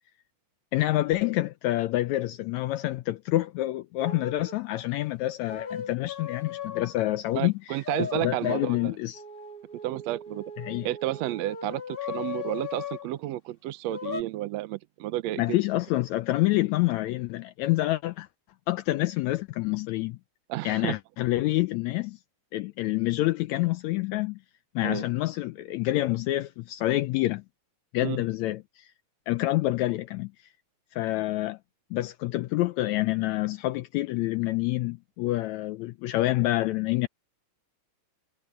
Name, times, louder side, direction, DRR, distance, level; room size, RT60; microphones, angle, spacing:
voice 1, 0.7-9.2 10.6-10.9 15.4-18.3 18.7-20.2 20.6-22.2 22.5-24.4 24.7-27.4 27.9-28.9 29.3-30.3 30.9-31.6 31.9-37.1, left 17 dB, 85° left, 1.6 m, -27 dB
sound 1, 4.0-4.6 5.5-7.0 7.8-13.1 13.9-14.2, left 6 dB, 50° left, 0.6 m, -38 dB
voice 2, 7.3-8.9 9.8-10.4 10.8-15.6 20.5-20.9 24.8-25.1 28.0-28.3, right 15 dB, 85° right, 1.5 m, -31 dB
omnidirectional pair, 3.8 m